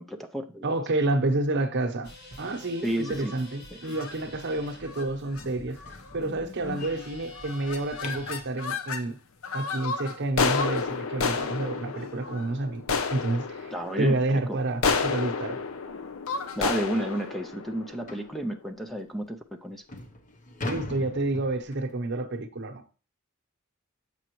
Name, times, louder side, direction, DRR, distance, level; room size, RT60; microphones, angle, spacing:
voice 1, 0.0-0.7 2.8-3.3 3.7-3.8 13.7-14.2 14.5-14.6 16.6-19.8, right 1 dB, ahead, 0.4 m, -31 dB
voice 2, 0.6-2.1 2.4-5.8 6.1-9.2 9.5-12.8 13.1-13.7 14.0-15.6 20.7-22.9, right 2 dB, 60° right, 0.8 m, -29 dB
sound 1, 2.0-8.4, equal, 55° left, 2.0 m, -48 dB
sound 2, 3.0-3.4 3.9-4.2 4.8-5.1 5.4-5.5 5.8-6.2 6.7-7.1 7.4-9.0 9.4-18.6, left 5 dB, 80° left, 0.7 m, -31 dB
sound 3, 5.4-8.5 11.3-11.4 11.9-12.0 12.4-12.5 13.0-13.1 14.2-14.3 14.7-14.9 15.5-15.6 16.0-16.1 16.6-16.7 18.1-18.4 19.1-19.2 19.7-22.0, left 1 dB, 40° left, 0.9 m, -40 dB
7.7 x 6.0 x 3.0 m
head